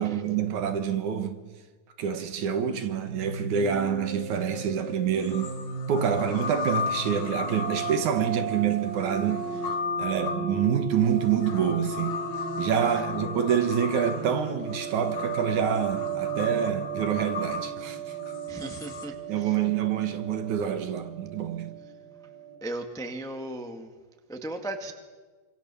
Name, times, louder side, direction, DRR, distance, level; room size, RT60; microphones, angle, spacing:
voice 1, 0.0-1.4 2.0-5.5 5.9-9.6 10.0-12.2 12.6-18.1 19.3-21.8, right 8 dB, 60° right, 2.5 m, -27 dB
sound 1, 3.1-22.6, right 5 dB, 80° right, 6.7 m, -35 dB
sound 2, 4.6-4.7 5.2-19.1, left 6 dB, 80° left, 3.9 m, -36 dB
voice 2, 18.5-19.1 22.6-23.9 24.3-24.9, right 1 dB, 5° left, 0.6 m, -35 dB
26.0 x 26.0 x 7.0 m
omnidirectional pair, 4.2 m